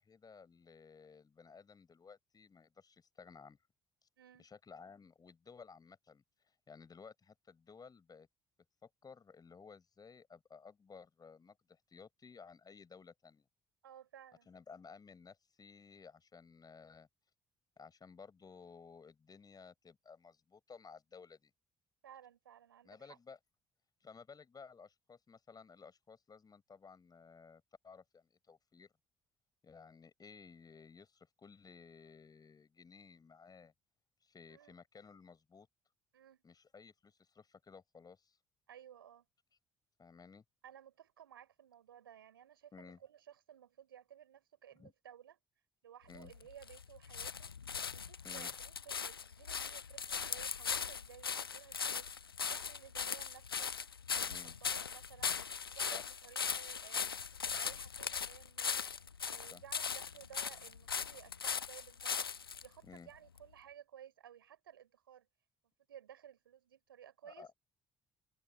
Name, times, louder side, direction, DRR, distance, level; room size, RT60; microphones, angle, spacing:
voice 1, 0.0-3.6 4.4-6.2 6.7-8.3 8.8-13.5 14.5-17.1 17.8-21.5 22.8-23.4 24.0-28.9 29.6-33.7 34.2-35.7 36.4-38.4 40.0-40.4 42.7-43.0 44.8-44.9 46.1-46.3 48.2-48.5 54.2-54.5 55.9-56.0 59.5-59.6 62.8-63.1 67.2-67.5, left 5 dB, 35° left, 6.3 m, -56 dB
voice 2, 4.2-4.5 13.8-14.5 22.0-23.2 34.5-34.8 36.1-36.4 38.7-39.2 40.6-45.4 45.8-47.5 47.9-53.7 54.1-55.4 55.7-58.9 59.3-62.2 62.6-65.3 65.9-67.5, right 10 dB, 80° right, 4.1 m, -57 dB
sound 1, 46.1-62.7 63.4-63.5, left 6 dB, 85° left, 1.0 m, -39 dB
figure-of-eight pair, 45°, 12 cm